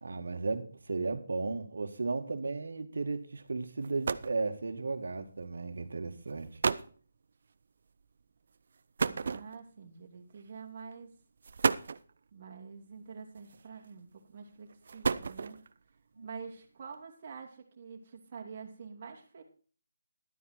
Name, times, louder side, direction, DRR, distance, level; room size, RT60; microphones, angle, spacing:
voice 1, 0.0-6.5 16.2-16.3, right 3 dB, 65° right, 2.0 m, -35 dB
sound 1, 3.5-3.6 3.8-4.4 5.4-5.6 6.3-6.4 6.6-7.0 9.0-9.8 10.8-10.9 11.4-12.1 13.4-13.9 14.7-15.7, right 5 dB, 45° right, 0.7 m, -32 dB
voice 2, 9.0-11.1 12.3-15.6 16.2-19.4, right 5 dB, 30° right, 2.9 m, -47 dB
12.5 x 9.2 x 4.5 m
hypercardioid pair, 175°, 0 cm